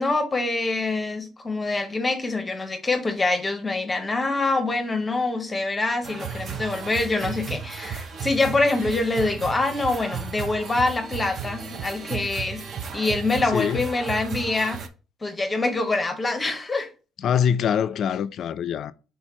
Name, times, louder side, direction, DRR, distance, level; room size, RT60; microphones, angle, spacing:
voice 1, 0.0-12.6 12.9-14.8 15.2-16.9, left 2 dB, 20° left, 0.7 m, -25 dB
sound 1, 6.0-14.9, right 6 dB, 45° right, 0.6 m, -34 dB
voice 2, 13.5-13.8 17.2-18.9, left 8 dB, 60° left, 0.3 m, -24 dB
4.3 x 3.9 x 3.0 m
cardioid pair, 110°, 0 cm